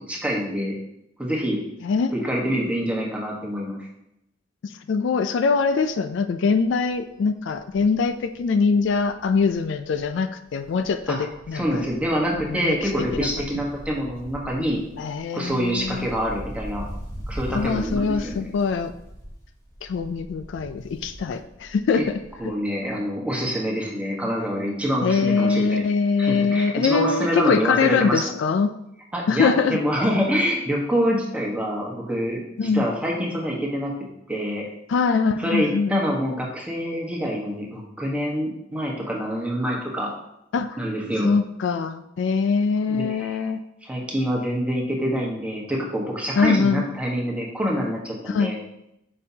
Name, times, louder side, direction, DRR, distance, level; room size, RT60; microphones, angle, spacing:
voice 1, 0.1-0.7 1.2-1.6 2.1-3.8 11.1-11.3 11.5-14.8 15.3-16.8 17.3-18.5 22.4-25.8 26.2-28.2 29.1-33.9 34.3-34.6 35.4-40.1 40.8-41.3 42.9-43.5 43.8-48.6, equal, 5° right, -3 dB, 1.2 m, -26 dB
voice 2, 1.8-2.1 4.6-11.9 12.5-13.6 15.0-16.1 17.5-18.9 19.8-22.5 25.0-28.7 29.3-29.8 32.6-32.9 34.9-36.0 40.5-40.8 41.2-43.6 46.4-46.8 48.3-48.5, left 5 dB, 65° left, 10 dB, 0.3 m, -23 dB
Wind, 5.6-5.9 6.3-6.4 6.6-10.2 10.5-22.6 22.9-23.0, equal, 15° left, 1.5 m, -40 dB
6.5 x 5.3 x 2.8 m, 0.82 s
head